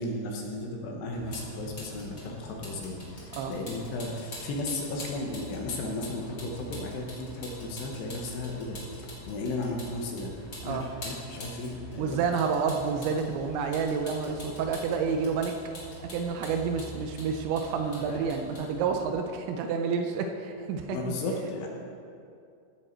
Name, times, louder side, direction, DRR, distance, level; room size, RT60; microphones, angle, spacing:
voice 1, 0.0-10.3 10.6-12.2 13.0-13.1 20.9-21.7, left 2 dB, 70° left, 0 dB, 2.9 m, -35 dB
Vehicle, 1.1-19.1, left 1 dB, 25° left, 2.4 m, -44 dB
voice 2, 12.0-15.5 16.0-21.1, right 5 dB, 80° right, 5 dB, 2.8 m, -29 dB
16.0 x 6.9 x 4.4 m, 2.4 s
omnidirectional pair, 5.4 m